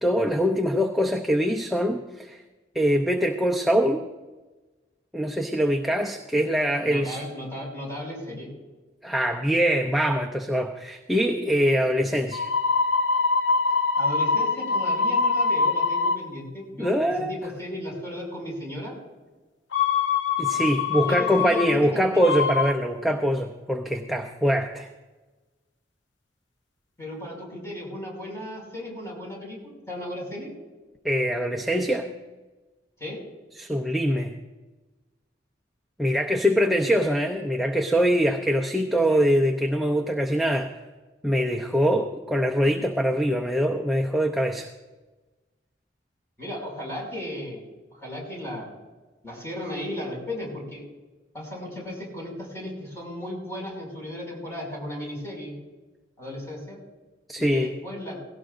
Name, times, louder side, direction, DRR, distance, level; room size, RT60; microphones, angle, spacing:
voice 1, 0.0-2.4 2.7-4.0 5.1-7.2 9.0-12.5 16.8-17.4 20.4-24.9 31.0-32.1 33.6-34.3 36.0-40.7 41.2-44.7 57.3-57.7, equal, ahead, 1 dB, 0.6 m, -23 dB
voice 2, 6.8-8.5 14.0-18.9 20.5-22.5 27.0-30.5 33.0-33.2 46.4-48.7 49.2-50.8 51.3-55.5 56.2-56.8 57.4-58.2, left 1 dB, 15° left, -2 dB, 5.7 m, -35 dB
sound 1, 12.3-16.2 19.7-21.7 22.2-22.8, left 4 dB, 80° left, 1.0 m, -24 dB
18.0 x 17.0 x 2.6 m, 1.2 s
head